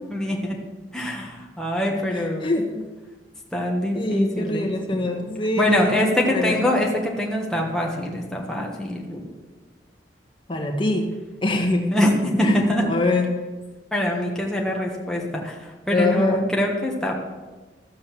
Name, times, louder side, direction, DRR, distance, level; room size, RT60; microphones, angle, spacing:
voice 1, 0.1-0.6 0.9-2.5 3.5-5.0 5.6-9.3 11.9-12.8 13.9-17.1, left 1 dB, 5° left, -2 dB, 1.4 m, -24 dB
voice 2, 2.1-2.9 3.9-5.9 6.2-6.6 10.5-11.1 11.4-12.0 12.4-13.3 15.9-16.5, left 2 dB, 30° left, 2 dB, 1.7 m, -24 dB
13.0 x 7.8 x 7.4 m, 1.3 s
head